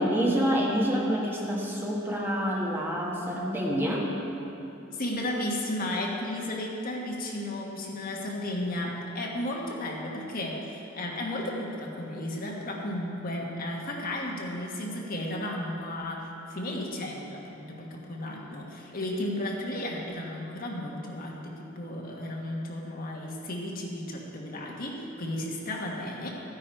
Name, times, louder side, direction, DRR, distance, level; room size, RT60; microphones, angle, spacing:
voice 1, 0.0-4.1, equal, 10° right, -3 dB, 1.5 m, -27 dB
voice 2, 4.9-26.3, left 1 dB, 45° left, -1 dB, 1.5 m, -34 dB
13.5 x 10.0 x 4.5 m, 3.0 s
head